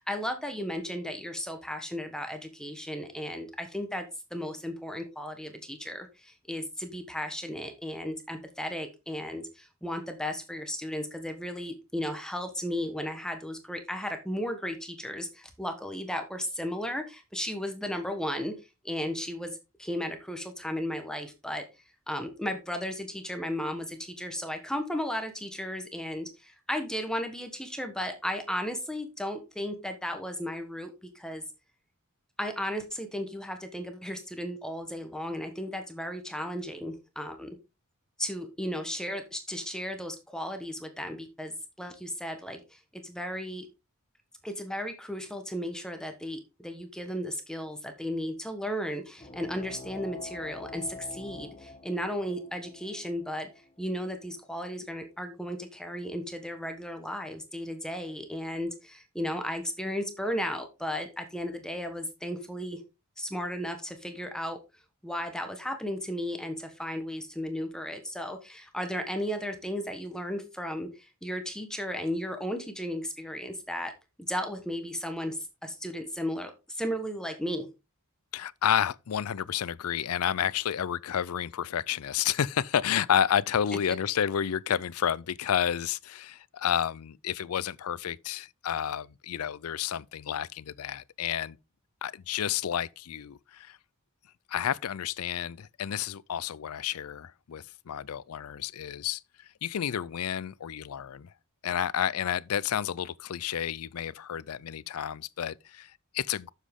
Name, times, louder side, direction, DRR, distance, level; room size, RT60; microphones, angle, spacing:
voice 1, 0.0-4.0 4.3-18.5 18.8-21.6 22.1-31.4 32.4-37.6 38.2-43.7 44.4-53.5 53.8-62.8 63.2-64.6 65.0-73.9 74.3-77.7, equal, 5° left, 1.2 m, -35 dB
sound 1, 49.2-54.3, left 3 dB, 25° left, 1.2 m, -45 dB
voice 2, 78.3-91.6 92.0-93.8 94.5-101.3 101.6-106.5, left 9 dB, 85° left, 0.4 m, -30 dB
10.0 x 7.3 x 3.6 m
head